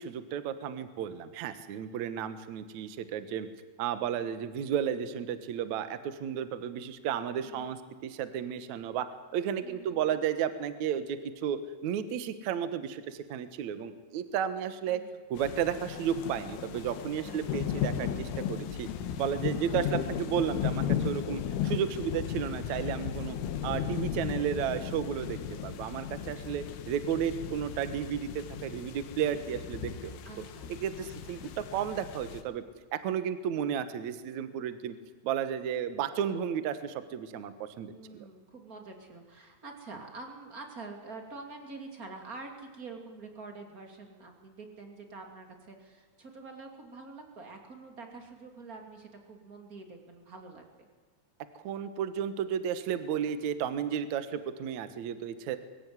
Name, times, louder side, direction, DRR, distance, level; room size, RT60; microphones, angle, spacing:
voice 1, 0.0-3.5 3.8-9.1 9.3-15.0 15.3-18.9 19.2-23.4 23.6-30.2 30.8-32.6 33.0-35.0 35.2-38.3 51.6-55.6, right 8 dB, 75° right, 11 dB, 1.7 m, -33 dB
voice 2, 9.6-10.2 14.9-15.2 17.2-17.6 19.6-19.8 23.2-23.8 30.2-31.1 37.9-50.9, right 3 dB, 25° right, 3 dB, 2.2 m, -47 dB
sound 1, 15.4-32.4, left 9 dB, 90° left, 3.9 m, -35 dB
23.0 x 16.0 x 9.6 m, 1.4 s
omnidirectional pair, 5.4 m